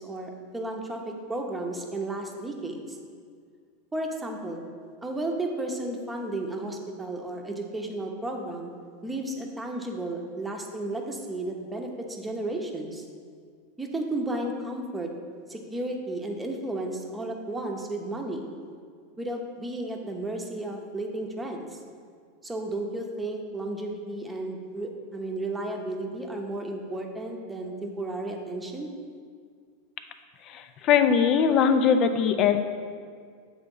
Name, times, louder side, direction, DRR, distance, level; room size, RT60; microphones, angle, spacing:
voice 1, 0.0-3.0 3.9-4.6 5.0-8.7 9.0-13.0 13.8-15.1 15.5-18.5 19.2-21.7 22.4-28.9, right 2 dB, 10° right, 2 dB, 0.9 m, -33 dB
voice 2, 30.5-32.6, left 7 dB, 45° left, 8 dB, 0.5 m, -21 dB
7.8 x 3.5 x 5.4 m, 2.1 s
hypercardioid pair, 110°, 0 cm